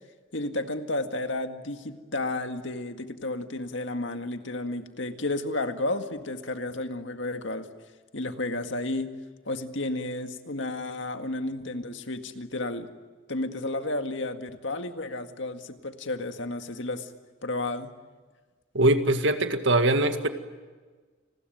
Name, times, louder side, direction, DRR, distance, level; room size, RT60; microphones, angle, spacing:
voice 1, 0.3-7.7 8.1-9.1 9.5-12.9 13.3-17.1 17.4-17.9, left 2 dB, 65° left, 7 dB, 2.0 m, -32 dB
voice 2, 18.7-20.3, right 1 dB, 65° right, 8 dB, 2.0 m, -22 dB
30.0 x 20.5 x 9.4 m, 1.4 s
head